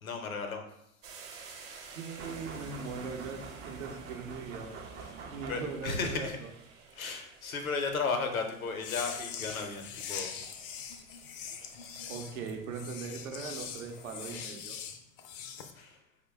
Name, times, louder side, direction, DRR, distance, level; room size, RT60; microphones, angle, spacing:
voice 1, 0.0-0.6 5.0-5.2 5.5-6.4 6.9-10.4 15.7-16.0, left 4 dB, 75° left, 5 dB, 0.7 m, -35 dB
sound 1, 1.0-14.5, right 5 dB, 45° right, 0.9 m, -53 dB
voice 2, 1.9-4.7 5.3-6.3 12.1-14.8, right 5 dB, 70° right, 3 dB, 0.7 m, -40 dB
sound 2, 2.2-6.1, right 5 dB, 25° right, 0.4 m, -45 dB
sound 3, 8.7-15.7, left 7 dB, 40° left, 0.4 m, -42 dB
4.5 x 2.2 x 3.3 m, 0.81 s
figure-of-eight pair, 80°, 42 cm